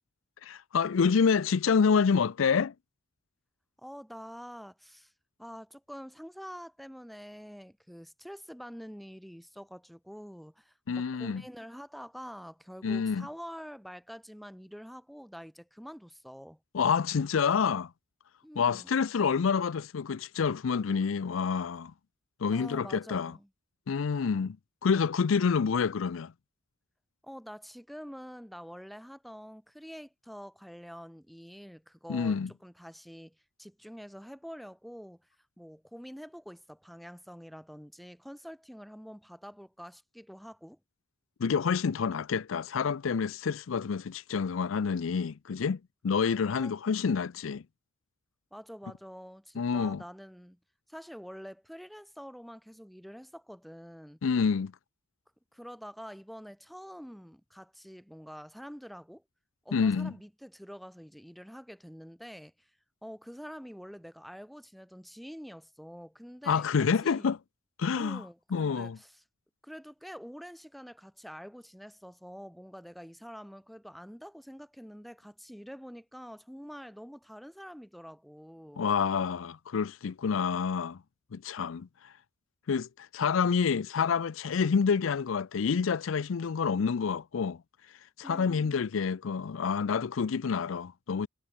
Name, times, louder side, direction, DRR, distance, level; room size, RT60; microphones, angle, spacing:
voice 1, 0.4-2.7 10.9-11.4 12.8-13.3 16.7-17.9 18.6-21.9 22.4-23.3 23.9-24.6 24.8-26.3 32.1-32.5 41.4-47.6 49.6-50.0 54.2-54.7 59.7-60.1 66.5-67.4 67.8-68.2 68.5-69.0 78.8-81.0 81.3-82.1 82.7-87.6 88.2-91.3, left 6 dB, 80° left, 0.5 m, -28 dB
voice 2, 3.8-5.1 5.4-16.6 18.4-18.9 22.5-23.5 27.2-35.2 35.6-40.8 46.6-46.8 48.5-50.6 50.9-54.2 55.5-59.2 59.6-62.7 63.0-67.3 68.0-69.2 69.6-78.9 88.2-89.0, equal, ahead, 2.7 m, -46 dB
head